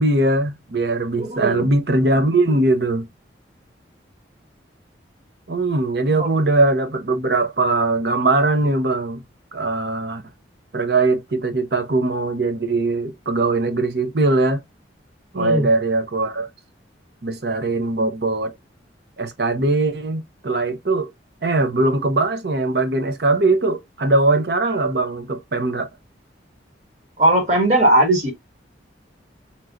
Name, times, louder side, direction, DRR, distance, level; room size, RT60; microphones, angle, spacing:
voice 1, 0.0-3.1 5.5-9.2 9.5-10.2 10.7-14.6 15.3-16.5 17.2-18.5 19.2-21.1 21.4-25.9, right 2 dB, 55° right, 0.8 m, -20 dB
voice 2, 1.2-1.7 6.2-6.3 15.3-15.7 27.2-28.3, right 1 dB, 40° right, 2.0 m, -18 dB
4.4 x 3.0 x 2.4 m
head